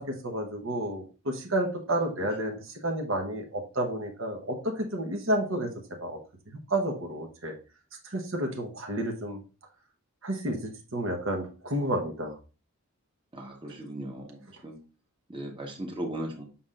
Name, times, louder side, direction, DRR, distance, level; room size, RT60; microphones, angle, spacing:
voice 1, 0.0-6.2 6.5-7.6 8.0-9.4 10.2-12.3, right 1 dB, 60° right, 2 dB, 1.0 m, -31 dB
voice 2, 13.3-14.8 15.3-16.4, right 1 dB, 20° right, 1 dB, 1.1 m, -37 dB
7.1 x 5.6 x 2.4 m, 0.33 s
head